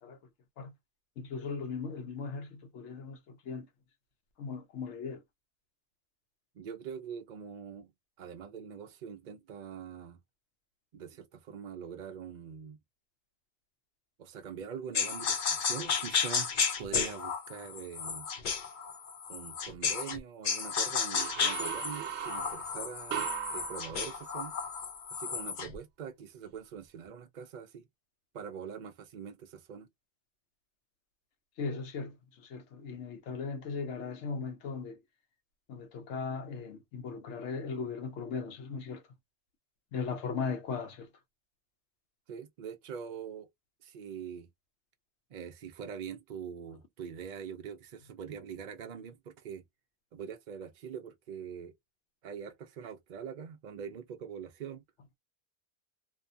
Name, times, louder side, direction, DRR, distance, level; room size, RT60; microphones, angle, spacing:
voice 1, 1.2-3.7 4.4-5.2 31.6-32.1 32.4-35.0 35.7-39.0 39.9-41.1, left 5 dB, 90° left, 1.0 m, -38 dB
voice 2, 6.5-7.9 8.2-10.2 10.9-12.8 14.2-16.5 16.8-18.3 19.3-24.5 25.1-27.9 28.3-29.9 42.3-43.5 43.8-44.5 45.3-49.6 50.1-51.7 52.2-54.8, right 7 dB, 60° right, 0.5 m, -43 dB
sound 1, 14.9-20.2 20.4-25.8, left 6 dB, 55° left, 0.6 m, -33 dB
sound 2, 21.1-24.7, right 10 dB, 85° right, 0.9 m, -38 dB
2.6 x 2.3 x 2.5 m
omnidirectional pair, 1.1 m